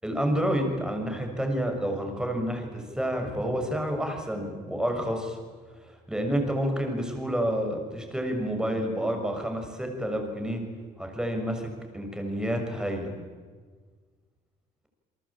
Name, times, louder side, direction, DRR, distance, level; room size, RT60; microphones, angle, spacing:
voice 1, 0.0-5.4 6.1-10.6 11.0-11.7 11.9-13.1, equal, 5° right, 3 dB, 7.0 m, -29 dB
29.5 x 23.0 x 8.8 m, 1.5 s
cardioid pair, 110°, 17 cm